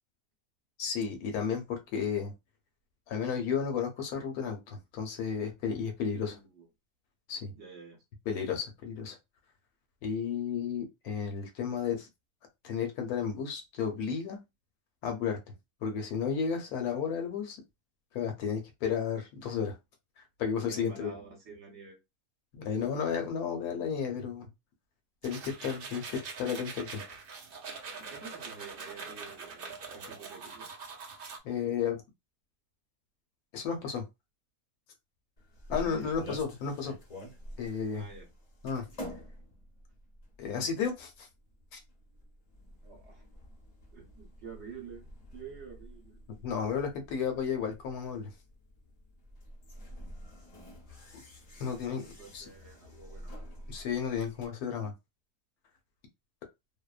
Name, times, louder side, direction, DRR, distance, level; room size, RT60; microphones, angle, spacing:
voice 1, 0.8-2.3 3.1-6.3 7.3-7.5 8.3-9.2 10.0-12.1 12.6-14.4 15.0-15.4 15.8-17.6 18.1-19.8 20.4-21.1 22.5-24.5 25.2-27.0 31.4-32.0 33.5-34.0 35.7-36.9 37.6-38.1 38.6-38.9 40.4-41.3 41.7-41.8 46.4-48.3 51.1-51.2 51.6-52.4 53.7-54.9, left 6 dB, 75° left, 1.1 m, -33 dB
voice 2, 6.2-6.7 7.5-8.0 20.7-22.0 28.0-30.7 35.8-36.2 37.9-38.3 42.8-43.3 43.9-46.2 51.5-51.9 52.2-53.3, right 5 dB, 50° right, 1.0 m, -49 dB
sound 1, 25.2-31.4, right 5 dB, 65° right, 0.5 m, -43 dB
sound 2, 35.4-54.5, equal, 40° left, 0.6 m, -48 dB
2.7 x 2.0 x 2.3 m
omnidirectional pair, 1.6 m